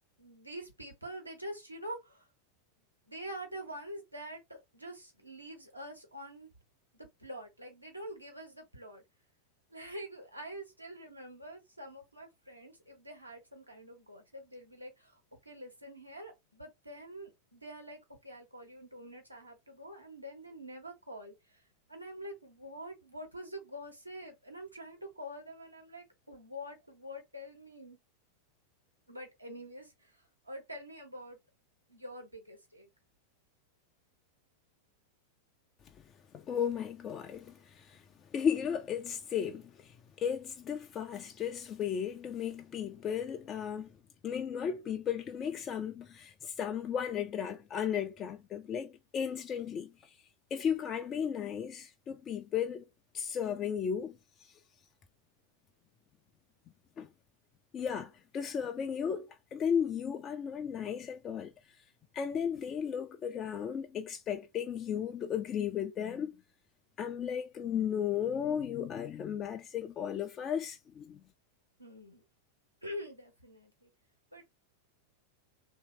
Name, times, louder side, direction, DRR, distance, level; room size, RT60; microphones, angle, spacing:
voice 1, 0.2-2.2 3.1-6.5 6.9-9.0 9.7-21.6 21.9-28.0 29.1-31.4 31.9-32.9 71.8-72.2 72.8-73.9 74.3-74.4, equal, 90° right, 1.2 m, -46 dB
voice 2, 36.3-38.0 38.3-43.9 44.2-50.1 50.5-52.8 53.1-54.2 54.4-54.5 57.0-57.1 57.7-61.5 62.1-66.3 67.0-71.2, left 8 dB, 30° left, 0.4 m, -35 dB
3.1 x 2.7 x 4.4 m
figure-of-eight pair, 90°, 0 cm